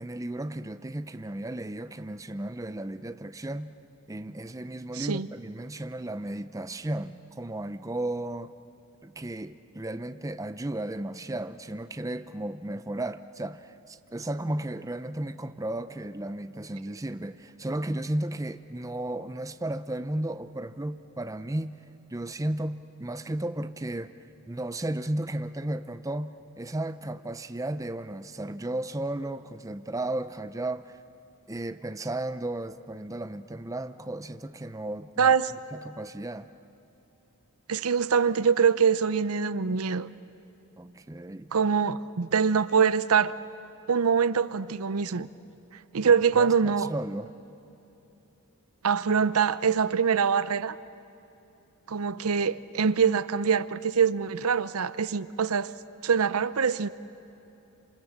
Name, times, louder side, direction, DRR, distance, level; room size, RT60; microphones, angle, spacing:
voice 1, 0.0-3.7 4.1-8.5 9.0-21.8 22.1-24.1 24.5-31.0 31.5-35.3 35.7-36.5 40.8-41.5 46.0-47.3, right 1 dB, 15° right, 0.5 m, -34 dB
voice 2, 4.9-5.3 35.2-35.5 37.7-40.1 41.5-43.3 43.9-45.3 45.9-46.9 48.8-50.8 51.9-55.7 56.0-56.9, right 6 dB, 80° right, 0.7 m, -24 dB
28.0 x 27.0 x 7.3 m
head